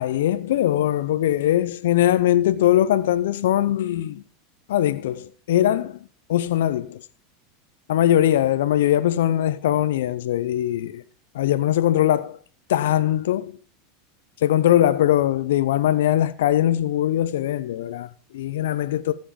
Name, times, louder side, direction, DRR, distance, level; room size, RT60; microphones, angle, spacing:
voice 1, 0.0-4.2 4.7-7.0 7.9-11.0 11.3-12.4 12.7-13.5 14.4-19.1, left 12 dB, 75° left, 0.7 m, -21 dB
14.5 x 7.4 x 5.1 m
hypercardioid pair, 90°, 0 cm